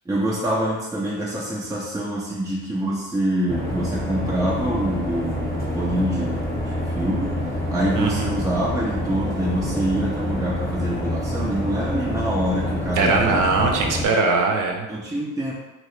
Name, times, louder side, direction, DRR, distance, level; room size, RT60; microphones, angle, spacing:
voice 1, 0.1-13.4 13.8-13.9 14.9-15.5, right 1 dB, 10° right, -6 dB, 0.4 m, -26 dB
sound 1, 3.5-14.1, equal, 5° left, 0.8 m, -27 dB
voice 2, 8.0-8.4 13.0-14.9, right 3 dB, 50° right, 2 dB, 0.6 m, -21 dB
2.8 x 2.8 x 3.2 m, 1.1 s
cardioid pair, 105°, 42 cm